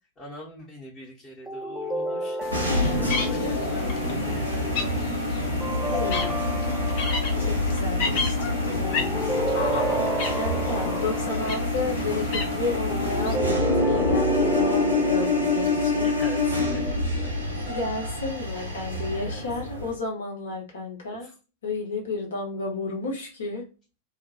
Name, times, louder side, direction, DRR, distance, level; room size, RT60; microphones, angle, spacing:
voice 1, 0.2-2.4 2.7-4.9 5.6-6.0 7.3-7.7 8.5-8.8 16.0-17.3 19.3-19.9 21.2-21.3, right 1 dB, 25° left, -6 dB, 0.8 m, -42 dB
sound 1, 1.5-3.9 5.6-7.4 8.8-11.6 12.9-17.4, right 1 dB, 5° right, 0.4 m, -30 dB
sound 2, 2.4-13.4, left 5 dB, 50° left, 0.5 m, -34 dB
sound 3, 2.5-19.9, left 2 dB, 80° right, 0.7 m, -27 dB
voice 2, 5.9-6.3 6.6-6.9 7.4-9.4 9.8-10.0 10.3-16.1 17.6-21.3 21.6-23.6, left 3 dB, 65° left, 0 dB, 0.9 m, -32 dB
2.4 x 2.0 x 2.5 m, 0.32 s
figure-of-eight pair, 90°, 0 cm